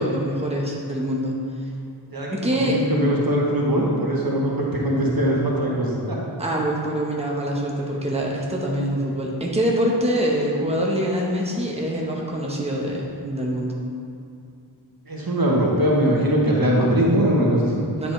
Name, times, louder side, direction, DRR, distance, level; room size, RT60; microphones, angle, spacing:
voice 1, 0.0-1.4 2.3-2.8 6.4-13.7 18.0-18.1, equal, 15° right, -3 dB, 1.2 m, -24 dB
voice 2, 2.1-6.2 15.1-17.9, equal, 50° right, -3 dB, 1.3 m, -21 dB
10.0 x 5.1 x 3.4 m, 2.4 s
wide cardioid pair, 45°, 44 cm